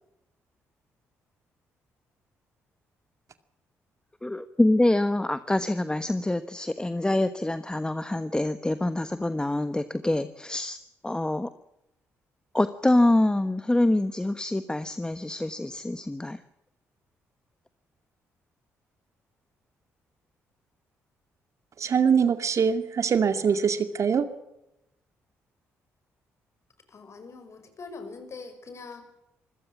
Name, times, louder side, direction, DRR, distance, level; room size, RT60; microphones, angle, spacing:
voice 1, 4.2-10.8 11.0-11.5 12.5-16.4, left 1 dB, 15° left, 11 dB, 1.3 m, -25 dB
voice 2, 21.8-24.3, right 6 dB, 55° right, 10 dB, 2.2 m, -23 dB
voice 3, 26.9-29.0, left 4 dB, 50° left, 9 dB, 5.8 m, -42 dB
25.5 x 17.0 x 7.2 m, 0.87 s
supercardioid pair, 55°, 6 cm